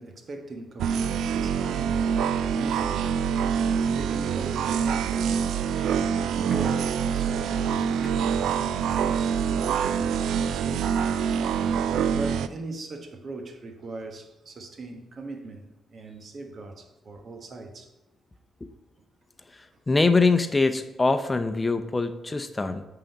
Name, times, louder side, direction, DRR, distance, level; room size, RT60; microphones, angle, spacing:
voice 1, 0.0-3.1 3.5-10.9 12.1-17.9, right 2 dB, 55° right, 1.2 m, -40 dB
sound 1, 0.8-12.5, right 7 dB, 75° right, 0.3 m, -25 dB
voice 2, 19.5-22.8, left 3 dB, 25° left, 0.7 m, -23 dB
8.9 x 3.9 x 5.4 m
hypercardioid pair, 45°, 0 cm